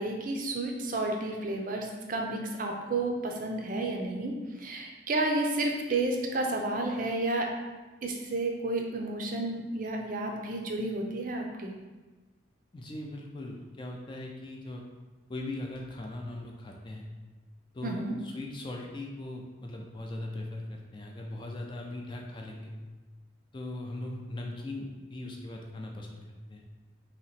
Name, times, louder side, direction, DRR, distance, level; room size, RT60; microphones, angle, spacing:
voice 1, 0.0-4.3 4.6-7.5 8.0-11.7 17.8-18.2, right 2 dB, 45° right, 2 dB, 0.4 m, -31 dB
voice 2, 12.7-14.8 15.3-17.0 17.7-22.7 23.5-26.2 26.5-26.6, left 1 dB, 25° left, 0 dB, 0.3 m, -39 dB
2.9 x 2.9 x 4.1 m, 1.3 s
head